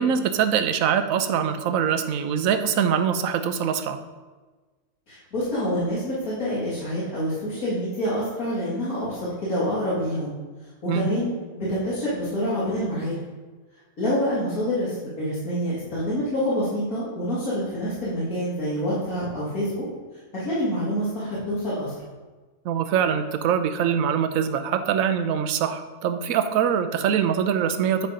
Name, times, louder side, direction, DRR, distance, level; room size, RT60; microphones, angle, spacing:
voice 1, 0.0-4.0 10.9-11.1 22.6-28.1, right 8 dB, 70° right, 9 dB, 1.0 m, -23 dB
voice 2, 5.1-10.3 10.8-13.2 14.0-19.9 20.3-21.9, equal, 70° left, -10 dB, 2.8 m, -27 dB
9.4 x 4.2 x 5.1 m, 1.3 s
omnidirectional pair, 1.5 m